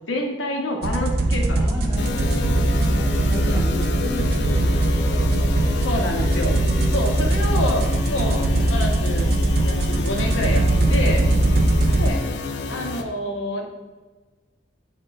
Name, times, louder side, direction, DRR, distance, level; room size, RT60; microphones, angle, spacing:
voice 1, 0.1-2.0 3.4-3.9 5.8-6.5 6.9-9.3 9.6-11.2 12.0-12.2 12.7-13.7, left 1 dB, 90° left, 2 dB, 0.7 m, -28 dB
sound 1, 0.8-12.1, right 1 dB, 55° right, 0.3 m, -21 dB
voice 2, 1.5-5.8 6.5-7.4 11.0-12.1, left 1 dB, 20° right, -7 dB, 1.4 m, -35 dB
sound 2, 2.0-13.0, left 4 dB, 60° left, 0.3 m, -30 dB
4.9 x 2.1 x 3.8 m, 1.3 s
head